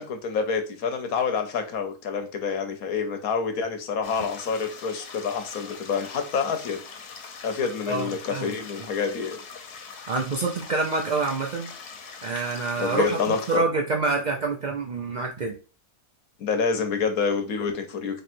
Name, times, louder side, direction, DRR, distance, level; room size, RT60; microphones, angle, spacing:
voice 1, 0.0-6.8 7.4-9.4 12.8-13.6 16.4-18.2, left 5 dB, 70° left, 6 dB, 1.3 m, -27 dB
sound 1, 4.0-13.6, left 5 dB, 90° left, 1.4 m, -42 dB
voice 2, 7.9-8.5 10.1-11.7 12.2-15.5, right 3 dB, 55° right, 1 dB, 0.5 m, -27 dB
4.5 x 3.2 x 2.6 m, 0.34 s
omnidirectional pair, 1.6 m